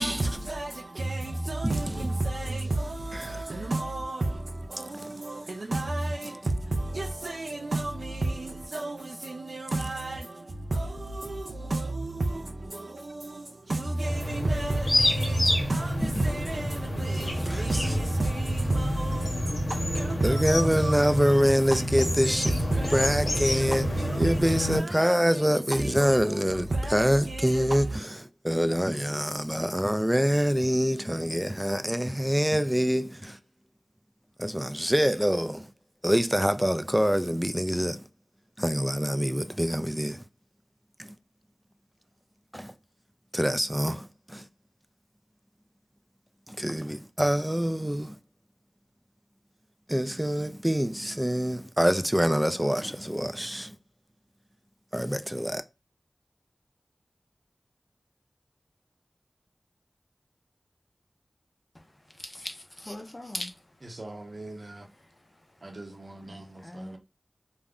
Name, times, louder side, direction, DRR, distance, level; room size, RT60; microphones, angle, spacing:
voice 1, 0.0-28.0, right 2 dB, 90° right, 0.3 m, -32 dB
sound 1, 14.0-24.8, equal, 85° left, 0.7 m, -28 dB
voice 2, 17.1-17.7 20.2-22.5 22.9-23.9 24.2-27.9 28.4-33.4 34.4-35.7 36.0-38.0 38.6-40.2 41.0-41.1 42.5-42.7 43.3-44.4 46.5-48.2 49.9-53.7 54.9-55.6, equal, 10° right, 0.3 m, -25 dB
voice 3, 62.8-63.5 66.6-67.0, left 1 dB, 35° left, 0.6 m, -38 dB
voice 4, 63.8-64.9 65.6-67.0, right 2 dB, 65° right, 0.7 m, -42 dB
2.4 x 2.1 x 3.5 m
wide cardioid pair, 55°, 0 cm